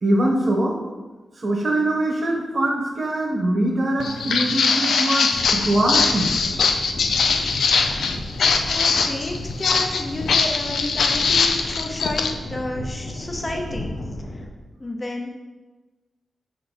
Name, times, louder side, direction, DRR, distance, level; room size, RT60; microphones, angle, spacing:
voice 1, 0.0-0.8 1.4-6.3, right 1 dB, 35° right, 0 dB, 1.2 m, -22 dB
Walk footsteps, 4.0-12.3, left 5 dB, 85° left, 0.5 m, -21 dB
sound 1, 5.3-14.5, left 1 dB, 40° left, 1.2 m, -34 dB
voice 2, 8.7-13.9 14.8-15.3, left 1 dB, 20° left, 1 dB, 0.7 m, -31 dB
6.9 x 4.1 x 5.1 m, 1.2 s
wide cardioid pair, 175°, 0 cm